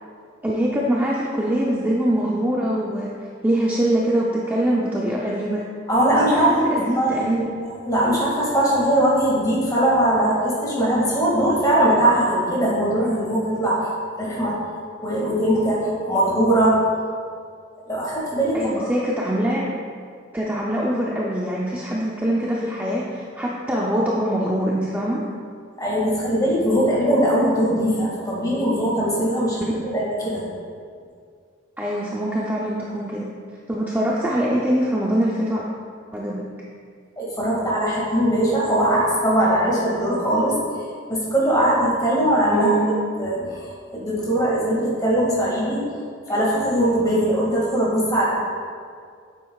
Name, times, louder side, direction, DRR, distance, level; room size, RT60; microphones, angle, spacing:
voice 1, 0.4-3.1 3.4-5.6 6.1-7.4 18.5-19.6 20.3-25.2 29.7-30.0 31.8-33.3 33.7-35.7 36.1-36.5 42.5-42.9, right 1 dB, 10° right, -4 dB, 0.5 m, -23 dB
voice 2, 5.9-6.5 6.9-13.9 14.2-14.6 15.0-16.8 17.9-18.8 25.8-30.4 37.2-40.6 41.1-42.7 43.2-45.9 46.3-48.2, right 1 dB, 20° left, -5 dB, 1.9 m, -20 dB
9.2 x 7.6 x 2.3 m, 2.2 s
head